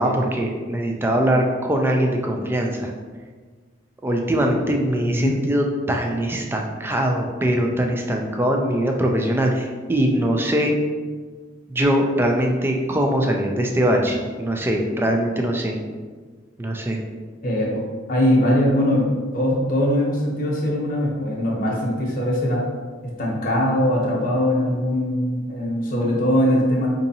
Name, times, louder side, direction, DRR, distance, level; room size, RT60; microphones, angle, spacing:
voice 1, 0.0-2.9 4.0-10.8 11.7-15.8 16.6-17.0, right 1 dB, 10° right, 1 dB, 0.3 m, -22 dB
voice 2, 5.1-5.4 17.4-17.8 18.1-22.6 23.2-26.9, equal, 45° left, -3 dB, 0.9 m, -21 dB
4.7 x 2.6 x 2.7 m, 1.5 s
head